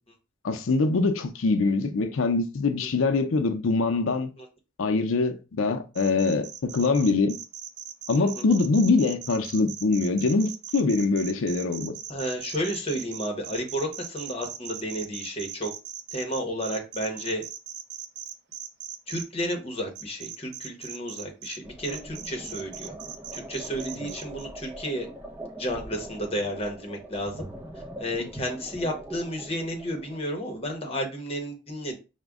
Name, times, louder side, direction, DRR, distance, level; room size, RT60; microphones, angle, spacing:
voice 1, 0.4-4.3 4.8-7.4 8.1-11.9, left 3 dB, 90° left, 0.5 m, -24 dB
sound 1, 5.9-19.2 20.0-21.6 21.8-24.4, right 9 dB, 55° right, 0.5 m, -39 dB
voice 2, 12.1-15.7 16.1-17.4 19.1-22.9 23.3-25.1 25.6-27.5 28.0-32.0, equal, 30° left, 0.9 m, -32 dB
sound 2, 21.6-30.2, right 1 dB, 10° right, 0.6 m, -42 dB
4.9 x 2.2 x 3.5 m
head